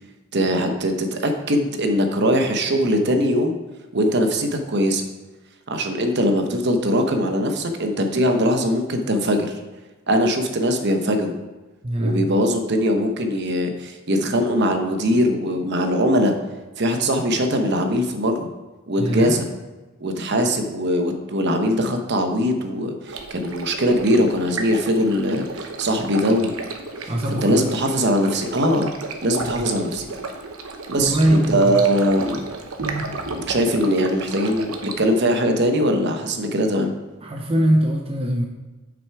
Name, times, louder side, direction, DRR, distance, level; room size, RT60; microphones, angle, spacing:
voice 1, 0.3-3.6 3.9-5.0 5.7-9.5 10.1-11.3 12.0-16.3 16.8-18.5 18.9-19.5 20.0-26.5 27.0-27.1 27.4-28.9 29.2-30.1 30.9-32.4 33.3-36.9, equal, 55° right, 5 dB, 0.9 m, -21 dB
voice 2, 11.8-12.3 19.0-19.4 27.1-27.7 29.4-29.7 31.0-32.0 32.8-33.1 37.2-38.4, right 1 dB, 30° right, 1 dB, 0.6 m, -22 dB
Stream, 23.1-35.1, right 3 dB, 85° right, 0.9 m, -33 dB
7.9 x 6.1 x 4.7 m, 1.2 s
head